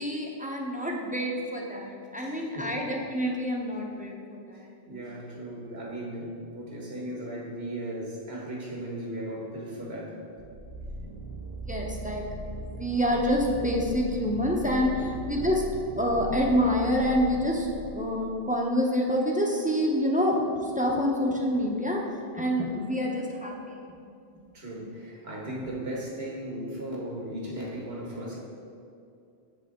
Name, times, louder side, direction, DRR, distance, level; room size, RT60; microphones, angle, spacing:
voice 1, 0.0-4.7 11.7-12.2 12.5-15.6 16.0-23.8, equal, 10° right, -1 dB, 0.7 m, -27 dB
voice 2, 2.2-2.8 4.5-10.2 14.9-15.1 24.5-28.4, right 1 dB, 70° right, -2 dB, 1.7 m, -37 dB
sound 1, 10.4-18.2, equal, 45° right, 0.7 m, -39 dB
8.1 x 6.8 x 3.6 m, 2.5 s
omnidirectional pair, 1.1 m